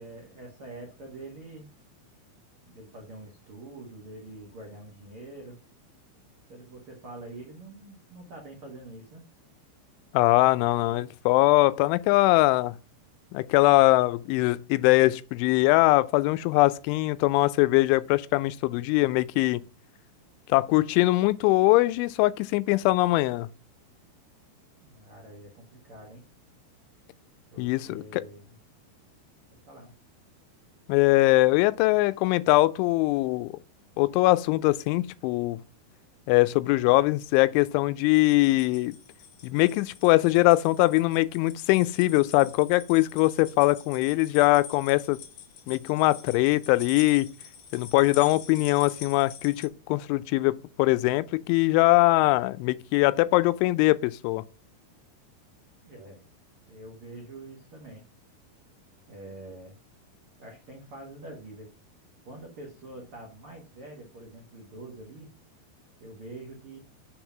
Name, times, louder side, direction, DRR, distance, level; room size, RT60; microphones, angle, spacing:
voice 1, 0.0-1.7 2.6-5.6 6.5-9.2 24.8-26.2 27.5-28.6 29.7-29.9 55.8-56.2 56.7-58.0 59.1-59.8 60.4-61.7 62.2-65.3 66.0-66.8, right 2 dB, 70° right, 1.2 m, -45 dB
voice 2, 10.1-12.8 13.3-19.6 20.5-23.5 27.6-28.2 30.9-33.5 34.0-35.6 36.3-38.9 39.4-45.2 45.7-47.3 47.7-54.4, left 19 dB, 90° left, 3.0 m, -22 dB
sound 1, 38.0-49.7, left 7 dB, 60° left, 2.4 m, -46 dB
6.9 x 5.4 x 5.8 m
omnidirectional pair, 5.3 m